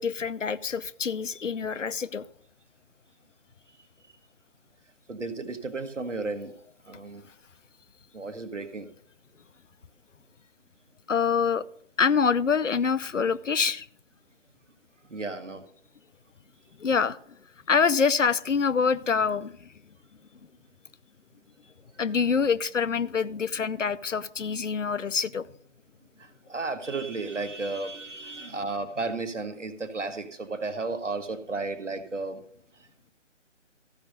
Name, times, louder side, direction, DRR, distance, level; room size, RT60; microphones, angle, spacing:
voice 1, 0.0-2.3 11.1-11.7 12.0-13.9 16.8-17.2 17.7-19.7 22.0-25.5, left 6 dB, 85° left, 0.7 m, -25 dB
voice 2, 5.1-6.5 6.9-7.2 8.1-8.9 15.1-15.6 26.2-32.4, right 3 dB, 80° right, 1.3 m, -33 dB
14.0 x 5.2 x 6.5 m
figure-of-eight pair, 150°, 37 cm